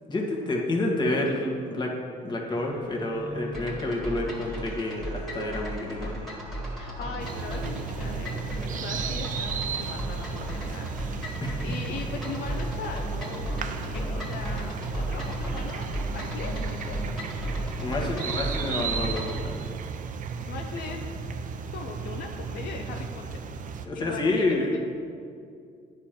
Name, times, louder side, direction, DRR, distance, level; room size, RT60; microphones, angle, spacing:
voice 1, 0.1-1.9 2.2-6.2 11.4-11.6 17.8-19.8 23.8-24.8, left 2 dB, 25° left, -1 dB, 1.6 m, -29 dB
sound 1, 2.5-7.7, right 3 dB, 85° right, 1.4 m, -43 dB
sound 2, 3.5-19.4, equal, ahead, 1.9 m, -35 dB
voice 2, 6.7-8.4 8.7-10.9 11.3-11.4 11.6-17.0 17.6-18.3 20.5-21.3 21.7-23.4 23.9-24.8, left 5 dB, 70° left, 2 dB, 0.8 m, -39 dB
sound 3, 7.2-23.9, right 6 dB, 50° right, 0.7 m, -34 dB
9.9 x 5.1 x 6.0 m, 2.4 s
cardioid pair, 110°, 17 cm